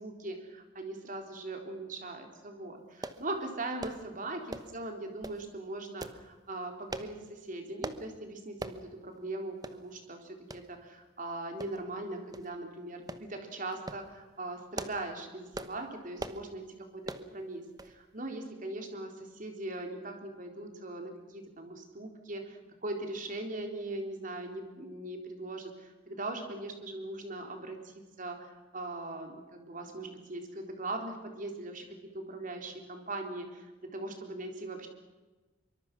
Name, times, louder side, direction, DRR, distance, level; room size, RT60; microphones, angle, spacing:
voice 1, 0.0-16.6 16.9-31.9 32.1-34.9, right 2 dB, 45° right, 4 dB, 3.9 m, -40 dB
sound 1, 3.0-3.2 3.8-4.0 4.5-4.8 5.2-5.4 6.0-6.2 6.9-7.1 7.8-8.0 8.6-8.8 9.2-9.3 9.6-9.8 10.5-10.6 11.6-12.0 12.3-12.5 13.1-13.3 13.7-14.0 14.5-15.1 15.5-15.8 16.2-16.4 17.0-17.3 17.8-18.0 18.3-18.4, right 2 dB, 20° right, 1.1 m, -40 dB
24.5 x 24.0 x 6.1 m, 1.2 s
head